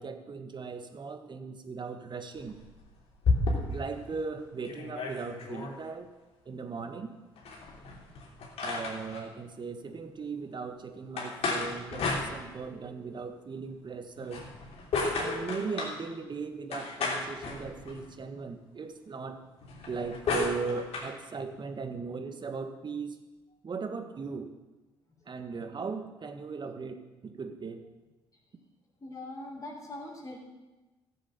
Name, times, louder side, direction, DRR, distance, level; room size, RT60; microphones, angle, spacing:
voice 1, 0.0-2.6 3.7-6.1 6.4-7.1 8.6-14.4 15.1-19.4 19.9-23.2 23.6-24.5 25.3-27.8, right 4 dB, 40° right, 7 dB, 1.6 m, -38 dB
sound 1, 2.4-3.9 4.4-4.5 4.6-5.7 7.4-9.2 11.2-12.8 14.2-16.0 16.7-18.1 19.6-21.1, left 3 dB, 60° left, 3.2 m, -33 dB
voice 2, 29.0-30.4, left 2 dB, 30° left, -5 dB, 3.8 m, -41 dB
14.5 x 7.6 x 6.8 m, 1.2 s
hypercardioid pair, 50°, 12 cm